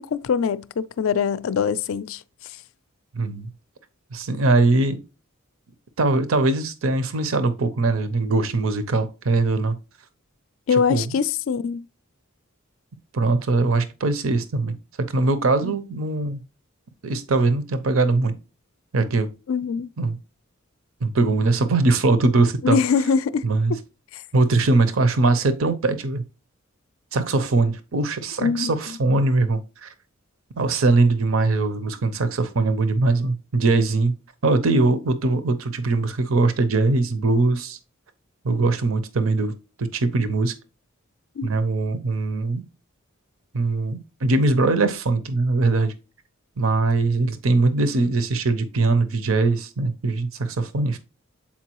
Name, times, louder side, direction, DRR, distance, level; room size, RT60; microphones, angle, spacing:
voice 1, 0.0-2.2 10.7-11.8 15.6-15.7 19.5-19.9 22.6-23.4 23.7-23.8 24.1-24.2 28.4-28.7 41.4-41.5, left 6 dB, 75° left, 0.4 m, -23 dB
voice 2, 3.1-3.5 4.1-5.0 6.0-9.8 10.7-11.1 13.1-14.8 15.1-16.4 17.0-18.3 18.9-19.3 20.0-20.2 21.0-22.8 23.4-23.8 24.3-26.2 27.1-29.9 30.6-34.1 34.4-37.8 38.4-39.5 39.8-40.5 41.4-42.6 43.5-45.9 46.6-51.0, right 3 dB, 80° right, 0.7 m, -21 dB
7.2 x 4.6 x 2.9 m
head